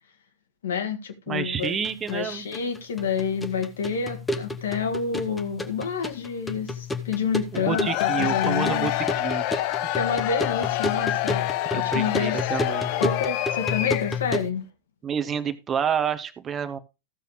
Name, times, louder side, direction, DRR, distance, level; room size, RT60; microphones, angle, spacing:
voice 1, 0.6-1.8 2.1-8.9 9.9-12.5 13.0-14.7, left 6 dB, 65° left, 1.6 m, -29 dB
voice 2, 1.3-2.4 7.5-8.9 9.2-9.6 11.7-12.9 15.0-16.8, right 8 dB, 25° right, 0.9 m, -29 dB
sound 1, 1.6-14.5, left 2 dB, 10° left, 0.9 m, -32 dB
Cheering / Crowd, 7.6-14.3, left 14 dB, 45° left, 0.6 m, -27 dB
15.0 x 6.7 x 3.1 m
figure-of-eight pair, 90°, 0 cm